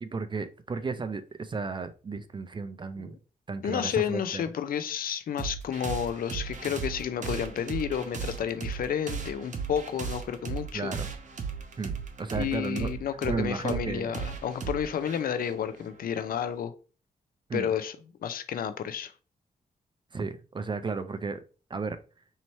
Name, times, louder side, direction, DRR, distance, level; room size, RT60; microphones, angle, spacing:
voice 1, 0.0-3.2 3.5-4.4 10.7-11.1 11.8-12.9 13.3-14.1 17.5-17.7 20.1-21.4 21.7-22.0, right 4 dB, 30° right, 0.4 m, -33 dB
voice 2, 3.6-11.0 12.3-16.7 17.5-18.0 18.2-19.1, left 8 dB, 70° left, 0.4 m, -31 dB
sound 1, 5.4-16.5, right 6 dB, 55° right, 0.7 m, -37 dB
3.1 x 2.8 x 4.1 m
cardioid pair, 95°, 15 cm